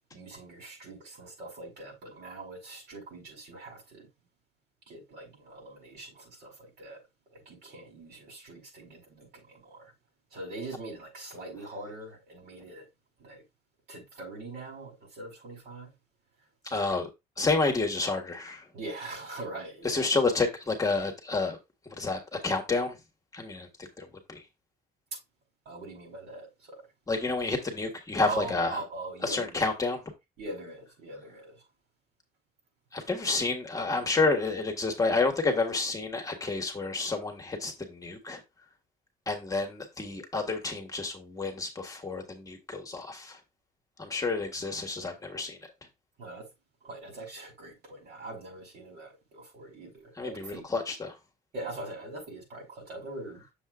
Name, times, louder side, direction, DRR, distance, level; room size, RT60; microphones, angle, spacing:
voice 1, 0.1-4.1 4.9-7.0 7.3-9.9 10.3-12.9 13.2-13.4 13.9-15.9 16.6-16.9 18.7-20.0 25.6-26.9 28.3-29.7 30.4-31.6 46.2-46.5 46.8-50.7 51.5-53.4, right 2 dB, 65° right, 4.8 m, -42 dB
voice 2, 16.7-17.1 17.4-18.6 19.8-21.6 22.0-22.9 23.3-23.7 24.0-24.4 27.1-28.7 29.2-30.0 32.9-38.4 39.3-43.3 44.0-45.6 50.2-50.3 50.7-51.1, left 3 dB, 20° left, 1.5 m, -29 dB
7.1 x 6.9 x 2.4 m
cardioid pair, 110°, 17 cm